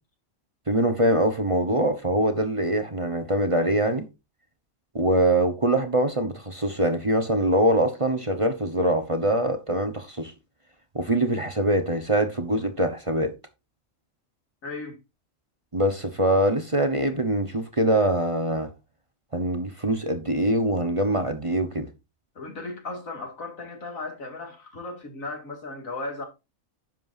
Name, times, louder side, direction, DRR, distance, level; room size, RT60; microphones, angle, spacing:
voice 1, 0.7-4.1 4.9-10.3 10.9-13.3 15.7-18.7 19.3-21.9, right 1 dB, 25° right, 1.1 m, -23 dB
voice 2, 14.6-15.0 22.4-26.2, left 2 dB, 85° left, 2.7 m, -36 dB
10.5 x 7.6 x 2.7 m
omnidirectional pair, 1.4 m